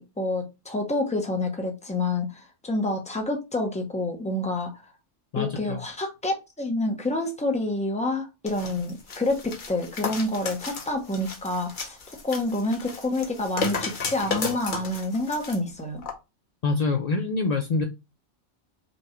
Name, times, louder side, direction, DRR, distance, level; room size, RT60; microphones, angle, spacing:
voice 1, 0.0-4.7 5.4-12.0 12.2-16.0, left 2 dB, 10° left, 0.5 m, -28 dB
voice 2, 5.3-5.8 16.6-17.8, left 3 dB, 75° left, 0.3 m, -25 dB
sound 1, 8.5-15.6 16.0-16.1, left 4 dB, 45° left, 0.8 m, -34 dB
5.2 x 2.2 x 2.9 m
omnidirectional pair, 1.3 m